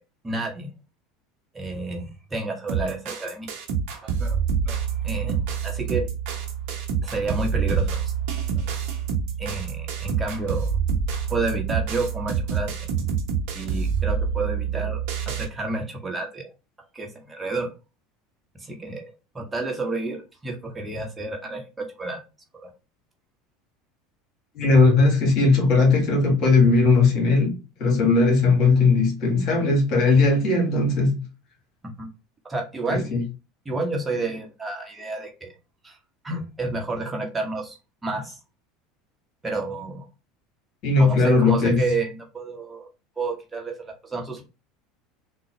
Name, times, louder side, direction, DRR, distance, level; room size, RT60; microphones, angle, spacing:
voice 1, 0.2-0.7 1.5-3.5 4.0-4.4 4.7-6.1 7.0-8.1 9.4-10.7 11.3-12.7 13.5-15.0 15.3-16.5 16.9-17.7 18.6-19.0 19.3-22.2 22.6-22.7 32.0-32.1 32.4-33.1 33.6-35.5 35.8-36.0 36.2-37.8 38.0-38.4 39.4-40.1 41.0-42.9 43.2-44.4, right 3 dB, 15° right, 1.0 m, -30 dB
sound 1, 2.7-15.5, right 6 dB, 60° right, 0.9 m, -27 dB
voice 2, 24.6-31.2 32.9-33.2 40.8-41.7, left 3 dB, 50° left, 1.5 m, -18 dB
3.8 x 2.2 x 3.1 m
figure-of-eight pair, 75°, 0 cm